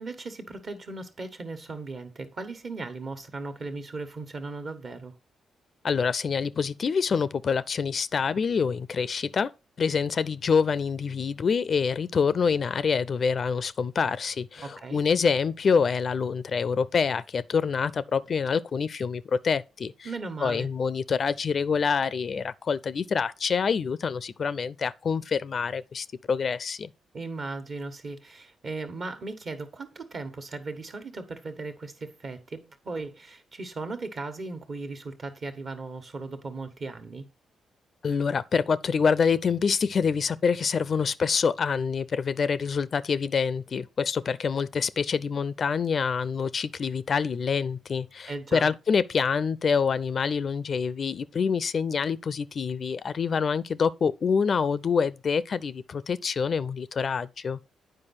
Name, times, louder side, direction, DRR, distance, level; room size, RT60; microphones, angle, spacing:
voice 1, 0.0-5.1 14.6-15.0 20.0-20.7 27.1-37.2 48.3-48.7, right 3 dB, 55° right, 1.3 m, -37 dB
voice 2, 5.8-9.5 9.8-20.1 20.4-26.9 38.0-57.6, left 6 dB, 55° left, 0.4 m, -26 dB
8.9 x 4.8 x 4.2 m
hypercardioid pair, 50°, 0 cm